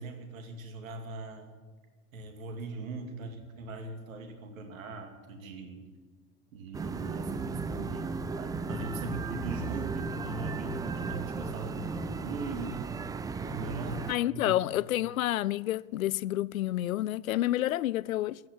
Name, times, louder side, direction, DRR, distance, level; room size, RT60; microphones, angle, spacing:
voice 1, 0.0-1.5 2.1-5.8 6.5-12.9 13.4-14.6, right 2 dB, 65° right, 2.6 m, -40 dB
sound 1, 6.7-14.1, right 4 dB, 10° right, 0.4 m, -35 dB
voice 2, 14.1-18.4, left 14 dB, 70° left, 0.5 m, -29 dB
14.0 x 9.0 x 9.7 m
figure-of-eight pair, 85°, 43 cm